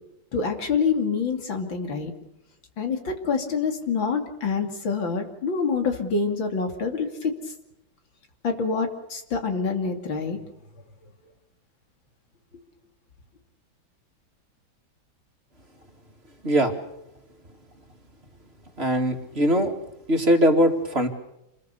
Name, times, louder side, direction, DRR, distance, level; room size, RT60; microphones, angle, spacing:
voice 1, 0.3-2.1 2.8-7.3 8.4-10.4, left 5 dB, 75° left, 5 dB, 3.5 m, -26 dB
voice 2, 18.8-19.7 20.1-21.1, equal, 30° right, 4 dB, 2.4 m, -21 dB
27.5 x 20.5 x 6.9 m, 0.85 s
omnidirectional pair, 2.1 m